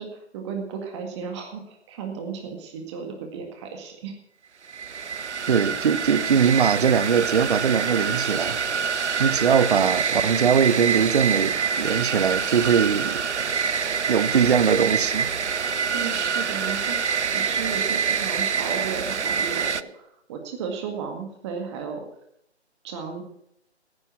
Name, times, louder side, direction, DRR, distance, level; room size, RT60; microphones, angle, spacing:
voice 1, 0.0-4.1 15.9-22.1 22.8-23.2, right 6 dB, 25° right, 2.0 m, -34 dB
sound 1, 4.7-19.8, right 6 dB, 85° right, 0.7 m, -26 dB
voice 2, 5.5-13.2 14.1-15.3, right 7 dB, 50° right, 0.9 m, -21 dB
15.5 x 9.8 x 5.9 m
figure-of-eight pair, 145°, 34 cm